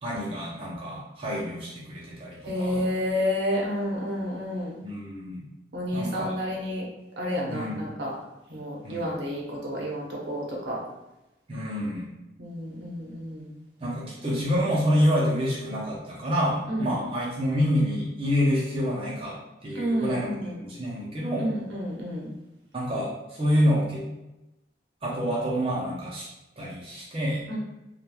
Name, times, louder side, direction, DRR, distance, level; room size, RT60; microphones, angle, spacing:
voice 1, 0.0-2.8 4.8-5.4 5.9-6.3 7.5-7.9 8.8-9.2 11.5-12.1 13.8-20.3 20.6-21.5 22.7-24.0 25.0-26.3 26.6-27.4, equal, 30° right, -6 dB, 0.5 m, -27 dB
voice 2, 2.4-4.8 5.7-6.9 7.2-8.1 8.5-10.8 12.4-13.5 16.7-16.9 19.7-20.6 21.4-22.3 27.5-27.6, equal, 75° right, -3 dB, 0.7 m, -30 dB
2.9 x 2.2 x 2.2 m, 0.95 s
head